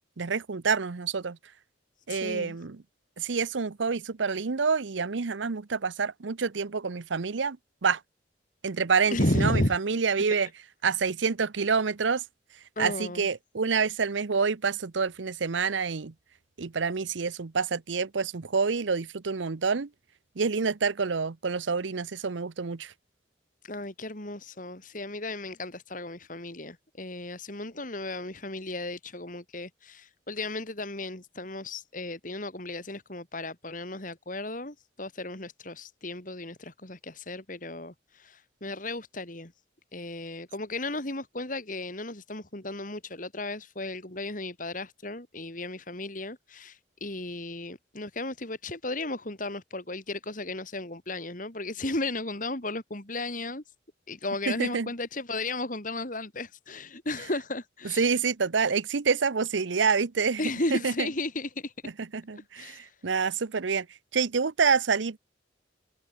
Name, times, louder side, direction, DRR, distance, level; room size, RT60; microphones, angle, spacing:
voice 1, 0.2-1.4 2.1-2.8 3.2-7.6 7.8-8.0 8.6-10.5 10.8-12.2 12.8-16.1 16.6-19.9 20.4-22.9 54.5-54.9 58.0-60.4 60.7-61.1 62.1-63.9 64.1-65.2, right 5 dB, 85° right, 0.8 m, -27 dB
voice 2, 2.1-2.6 9.1-9.8 12.8-13.3 23.6-39.5 39.9-53.6 54.1-58.1 60.4-61.7 62.3-62.9, left 2 dB, 45° left, 3.2 m, -34 dB
head